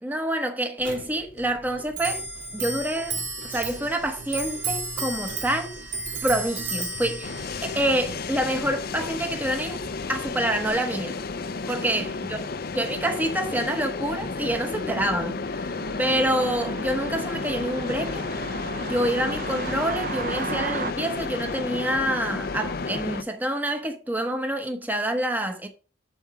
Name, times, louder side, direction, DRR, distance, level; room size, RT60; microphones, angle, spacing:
voice 1, 0.0-2.2 2.5-3.2 3.4-5.8 6.2-7.3 7.6-9.8 10.1-11.2 11.7-12.4 12.7-18.3 18.8-25.7, right 1 dB, 10° right, 0.9 m, -27 dB
Clock, 0.8-10.7, right 3 dB, 80° right, 2.1 m, -34 dB
sound 1, 7.2-23.2, left 4 dB, 50° left, 0.5 m, -32 dB
sound 2, 15.8-20.9, right 5 dB, 45° right, 0.6 m, -35 dB
7.1 x 7.1 x 4.8 m
head